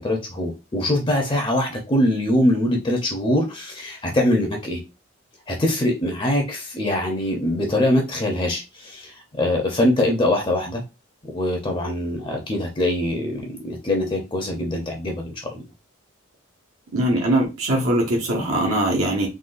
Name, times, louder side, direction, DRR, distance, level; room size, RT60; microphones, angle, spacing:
voice 1, 0.0-4.8 5.5-10.8 11.2-15.6, left 1 dB, 25° left, 0.5 m, -23 dB
voice 2, 16.9-19.3, right 1 dB, 80° right, 0.9 m, -21 dB
3.7 x 2.2 x 2.4 m
head